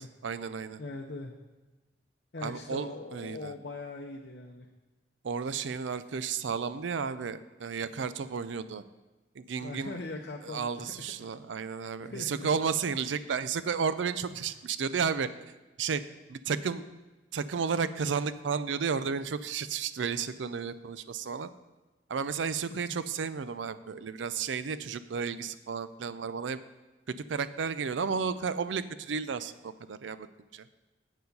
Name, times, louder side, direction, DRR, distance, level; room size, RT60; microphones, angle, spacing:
voice 1, 0.0-0.8 2.4-3.5 5.2-8.8 9.4-10.0 10.4-15.3 15.8-16.0 16.3-16.9 17.3-21.5 22.1-26.6 27.1-30.3 30.5-30.6, right 6 dB, 85° right, 14 dB, 0.5 m, -33 dB
voice 2, 0.8-1.3 2.3-4.7 9.6-11.1 12.1-12.5 14.4-14.5, left 2 dB, 60° left, 2 dB, 0.6 m, -41 dB
7.9 x 7.0 x 5.3 m, 1.2 s
head